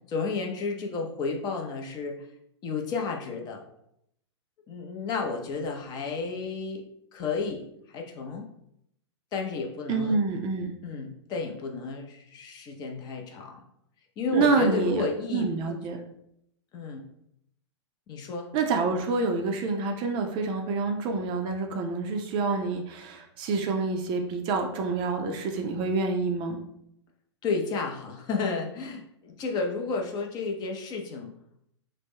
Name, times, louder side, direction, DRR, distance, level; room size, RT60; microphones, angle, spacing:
voice 1, 0.1-2.2 2.6-3.6 4.7-6.8 7.1-7.6 7.9-8.5 9.3-10.2 10.8-13.6 14.2-15.8 16.7-17.0 18.1-18.5 27.4-31.3, left 4 dB, 30° left, 2 dB, 0.5 m, -32 dB
voice 2, 9.9-10.7 14.3-15.1 15.3-16.0 18.5-26.6, right 4 dB, 35° right, 4 dB, 0.4 m, -27 dB
3.0 x 2.0 x 3.5 m, 0.74 s
hypercardioid pair, 110°, 15 cm